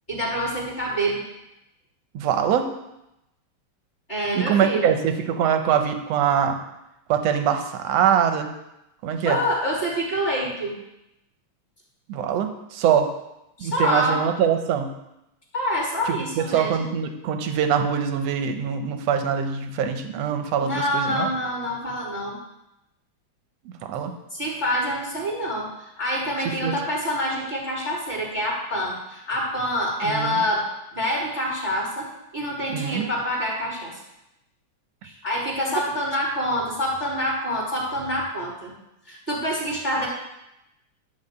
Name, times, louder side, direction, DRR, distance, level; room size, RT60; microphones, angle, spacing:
voice 1, 0.1-1.2 4.1-4.9 9.2-10.8 13.6-14.2 15.5-16.9 20.6-22.4 24.3-30.7 30.9-33.9 35.0-38.7 39.1-40.1, equal, 20° left, -5 dB, 2.8 m, -26 dB
voice 2, 2.1-2.7 4.3-6.6 7.1-8.5 9.0-9.4 12.1-13.1 13.6-14.9 16.1-21.3 23.7-24.1 26.6-26.7 30.0-30.4 32.7-33.1, right 8 dB, 70° right, 7 dB, 1.8 m, -23 dB
11.5 x 4.1 x 7.9 m, 0.87 s
omnidirectional pair, 3.4 m